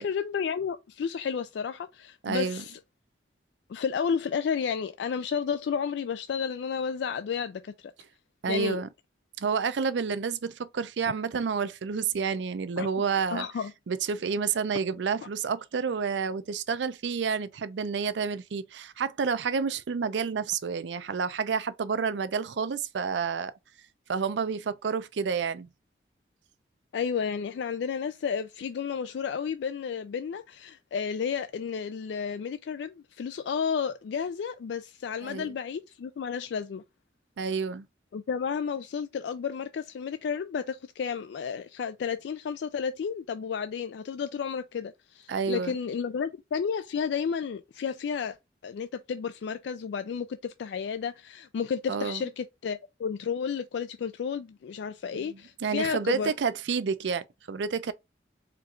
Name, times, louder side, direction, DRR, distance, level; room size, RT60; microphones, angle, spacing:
voice 1, 0.0-2.8 3.7-7.9 8.5-8.8 12.8-12.9 13.3-13.7 26.9-36.8 38.1-48.4 48.6-56.3, left 6 dB, 75° left, 0.3 m, -32 dB
voice 2, 2.2-2.6 8.4-8.9 9.4-13.5 13.9-23.5 24.1-25.7 35.2-35.6 37.4-37.9 45.3-45.7 51.9-52.2 55.1-57.9, right 5 dB, 80° right, 0.4 m, -29 dB
4.4 x 2.4 x 3.7 m
head